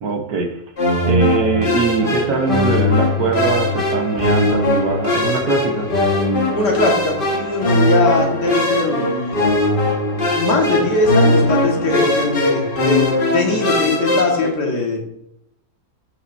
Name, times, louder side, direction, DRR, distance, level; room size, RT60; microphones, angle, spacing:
voice 1, 0.0-0.6 1.1-5.9, right 4 dB, 60° right, 4 dB, 1.3 m, -21 dB
sound 1, 0.8-14.5, left 1 dB, 30° left, 1.7 m, -19 dB
voice 2, 6.5-9.4 10.3-13.0 13.3-15.1, left 3 dB, 60° left, 0 dB, 2.3 m, -20 dB
14.0 x 5.8 x 2.6 m, 0.76 s
omnidirectional pair, 2.1 m